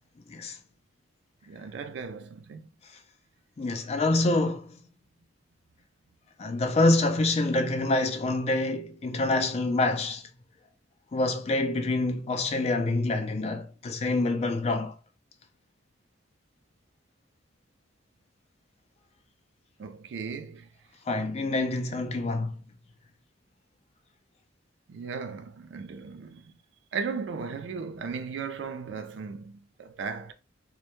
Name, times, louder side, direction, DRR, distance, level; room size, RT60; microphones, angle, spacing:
voice 1, 1.5-2.7 19.8-20.7 24.9-26.5 26.9-30.3, right 5 dB, 65° right, 0.3 m, -36 dB
voice 2, 3.6-4.8 6.4-10.3 11.1-14.9 21.1-22.5, left 2 dB, 35° left, 0.3 m, -26 dB
2.1 x 2.1 x 2.9 m
head